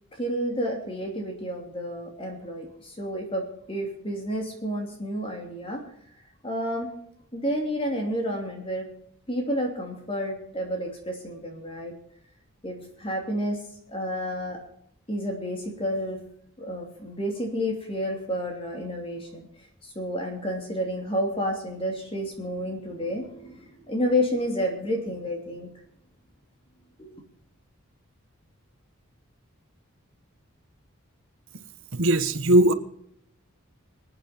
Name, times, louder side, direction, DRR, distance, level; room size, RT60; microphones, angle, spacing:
voice 1, 0.2-5.8 6.4-6.9 7.3-8.9 9.3-11.9 12.6-13.6 13.9-14.6 15.1-16.2 16.6-19.5 19.8-25.7 27.0-27.1, equal, 25° left, 1 dB, 2.9 m, -30 dB
voice 2, 32.0-32.7, right 1 dB, 70° right, 11 dB, 1.2 m, -19 dB
24.5 x 8.8 x 4.4 m, 0.68 s
head